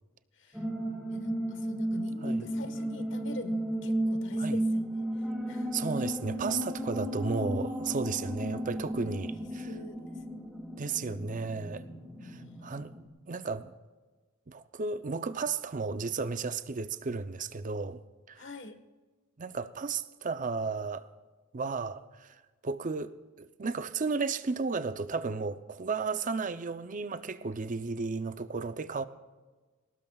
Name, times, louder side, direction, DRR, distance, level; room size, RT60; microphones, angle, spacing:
sound 1, 0.5-13.1, right 1 dB, 5° right, 1.9 m, -34 dB
voice 1, 1.1-5.1 5.5-5.7 9.6-10.1 12.2-12.6 18.4-18.8, left 2 dB, 65° left, 1.4 m, -45 dB
voice 2, 5.7-9.7 10.8-11.8 12.2-12.9 13.3-13.7 14.5-18.0 18.3-18.5 19.4-21.1 21.5-29.0, right 4 dB, 40° right, 0.6 m, -34 dB
22.0 x 18.5 x 2.4 m
head